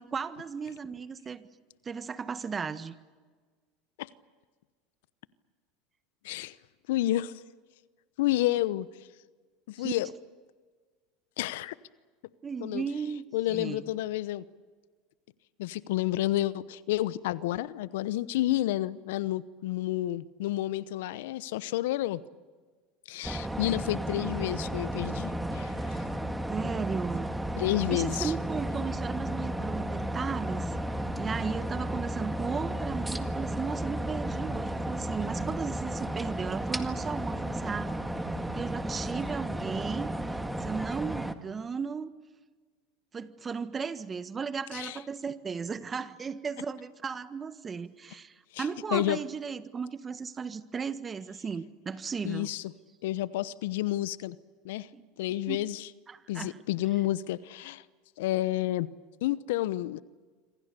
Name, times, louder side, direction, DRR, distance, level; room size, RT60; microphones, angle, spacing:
voice 1, 0.0-1.5 1.8-2.9 9.8-9.9 12.4-13.8 26.5-27.3 27.9-30.8 31.2-37.9 38.6-42.1 43.1-52.5 54.9-55.0 55.5-55.6 56.1-56.6, right 5 dB, 25° right, 13 dB, 1.5 m, -35 dB
voice 2, 6.9-7.3 8.2-8.9 9.7-10.1 11.4-11.7 12.6-12.8 13.3-14.4 15.6-22.2 23.1-26.0 27.5-28.3 44.7-45.0 48.5-48.6 48.9-49.2 52.2-52.6 53.0-54.4 54.6-54.9 55.2-55.9 56.3-57.8 58.2-58.9 59.2-60.0, left 15 dB, 75° left, 18 dB, 0.9 m, -30 dB
sound 1, 23.2-41.3, right 1 dB, 5° right, 1.9 m, -33 dB
27.0 x 25.5 x 6.9 m, 1.4 s
hypercardioid pair, 90°, 0 cm